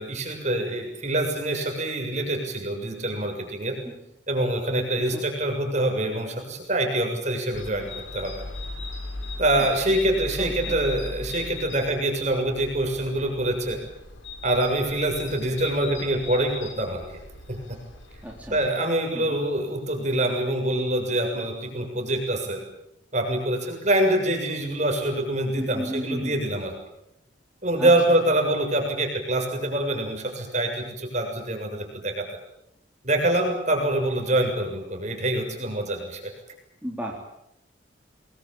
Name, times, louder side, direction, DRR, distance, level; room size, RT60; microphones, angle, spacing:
voice 1, 0.0-3.8 4.3-8.3 9.4-13.8 14.4-17.0 17.5-17.8 18.5-22.6 23.1-26.7 27.6-32.2 33.0-36.2, right 1 dB, 35° right, 4 dB, 7.2 m, -25 dB
sound 1, 7.5-18.7, left 2 dB, 80° left, 5.4 m, -38 dB
voice 2, 10.4-10.8 18.2-18.6 19.1-19.4 25.6-26.4 27.8-27.9 36.8-37.1, equal, 10° right, -2 dB, 3.8 m, -33 dB
28.0 x 21.5 x 8.9 m, 0.81 s
head